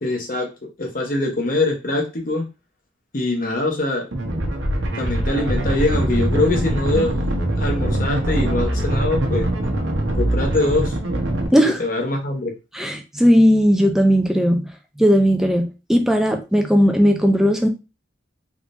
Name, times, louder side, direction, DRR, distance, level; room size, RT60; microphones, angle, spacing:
voice 1, 0.0-0.5 0.8-2.4 3.1-4.1 4.9-9.4 10.1-10.9 11.5-12.5, left 2 dB, 45° left, 0.8 m, -23 dB
sound 1, 4.1-11.5, right 1 dB, 80° right, 0.9 m, -22 dB
voice 2, 12.7-17.7, equal, ahead, 0.4 m, -17 dB
3.6 x 3.0 x 2.5 m
head